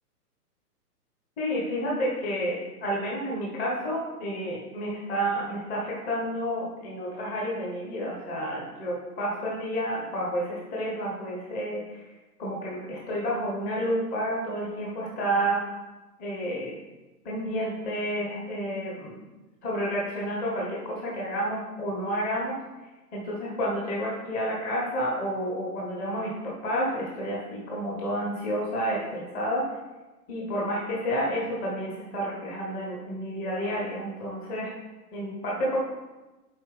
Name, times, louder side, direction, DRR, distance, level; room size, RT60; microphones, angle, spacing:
voice 1, 1.4-12.1 12.4-15.6 16.2-16.8 17.2-19.2 19.6-22.5 23.1-29.6 30.3-34.7 35.1-35.8, equal, 15° left, -4 dB, 1.0 m, -30 dB
7.5 x 4.4 x 3.3 m, 1.1 s
hypercardioid pair, 145°, 47 cm